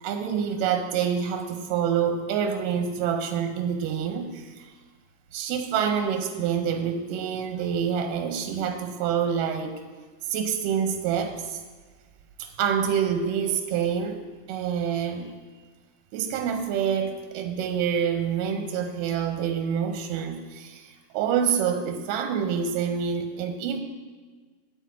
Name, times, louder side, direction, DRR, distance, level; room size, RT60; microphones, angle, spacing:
voice 1, 0.0-4.7 5.3-9.8 10.3-11.6 12.4-14.2 14.5-15.3 16.1-23.8, right 7 dB, 80° right, 6 dB, 2.2 m, -27 dB
9.9 x 4.6 x 7.3 m, 1.4 s
omnidirectional pair, 4.0 m